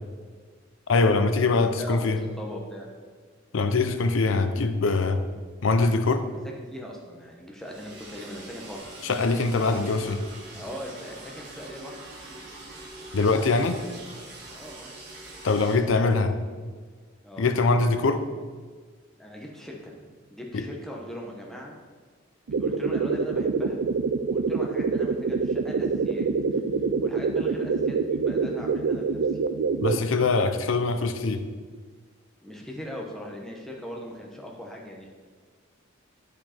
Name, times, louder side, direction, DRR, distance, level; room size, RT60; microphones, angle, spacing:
voice 1, 0.9-2.2 3.5-5.2 5.6-6.2 9.0-10.2 13.1-13.8 15.4-16.4 17.4-18.3 20.5-20.6 29.8-31.4, left 3 dB, 70° left, 9 dB, 0.6 m, -23 dB
voice 2, 1.5-2.9 6.3-8.8 10.5-12.0 14.5-14.9 17.2-17.4 19.2-21.7 22.5-23.8 24.3-26.3 27.0-29.4 32.4-35.1, equal, ahead, -1 dB, 1.0 m, -40 dB
Liquid, 7.6-15.7, right 2 dB, 55° right, 1.8 m, -43 dB
sound 1, 22.5-30.1, right 4 dB, 70° right, 0.4 m, -26 dB
9.2 x 5.0 x 4.4 m, 1.5 s
head